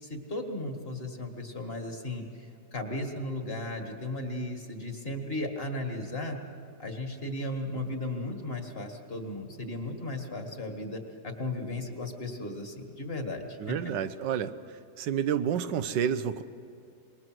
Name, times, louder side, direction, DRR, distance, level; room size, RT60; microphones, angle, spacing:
voice 1, 0.0-6.4 6.8-13.8, left 1 dB, 35° left, 4 dB, 2.2 m, -35 dB
voice 2, 13.6-14.5 15.0-16.4, right 8 dB, 85° right, 11 dB, 1.5 m, -29 dB
26.0 x 21.5 x 6.2 m, 2.5 s
omnidirectional pair, 1.9 m